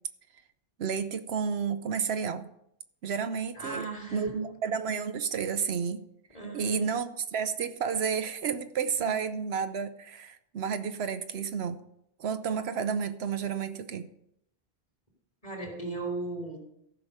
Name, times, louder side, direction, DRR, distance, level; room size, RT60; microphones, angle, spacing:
voice 1, 0.8-2.5 3.0-6.0 6.5-11.8 12.2-14.1, right 6 dB, 75° right, 10 dB, 0.9 m, -31 dB
voice 2, 3.5-4.4 6.3-6.9 9.0-9.1 15.4-16.6, right 3 dB, 35° left, 2 dB, 3.2 m, -36 dB
14.0 x 5.8 x 6.6 m, 0.76 s
omnidirectional pair, 1.1 m